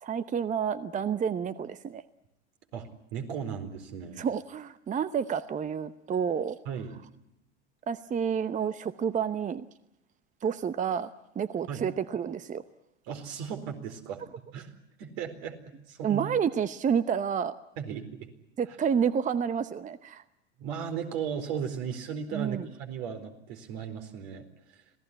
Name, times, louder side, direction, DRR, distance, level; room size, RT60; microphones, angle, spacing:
voice 1, 0.0-2.0 4.2-6.6 7.9-9.7 10.4-11.1 11.4-12.6 16.0-17.5 18.6-20.2 22.3-22.7, right 7 dB, 20° right, 14 dB, 0.9 m, -29 dB
voice 2, 2.7-4.2 6.7-7.0 11.7-11.9 13.1-14.2 14.5-14.7 15.0-16.3 17.8-18.3 20.6-24.4, right 7 dB, 60° right, 6 dB, 4.4 m, -36 dB
26.5 x 17.5 x 9.9 m, 0.86 s
hypercardioid pair, 90°, 35 cm